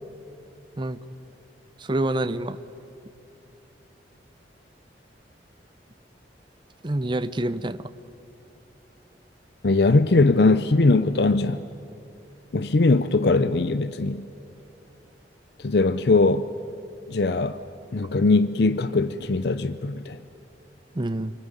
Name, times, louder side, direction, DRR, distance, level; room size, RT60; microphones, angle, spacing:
voice 1, 1.8-2.6 6.8-7.8 20.9-21.3, right 1 dB, 25° right, 0.7 m, -27 dB
voice 2, 9.6-11.6 12.5-14.3 15.6-16.5 17.1-17.6 17.9-20.2, left 3 dB, 65° left, 0.6 m, -20 dB
28.0 x 20.0 x 9.9 m
head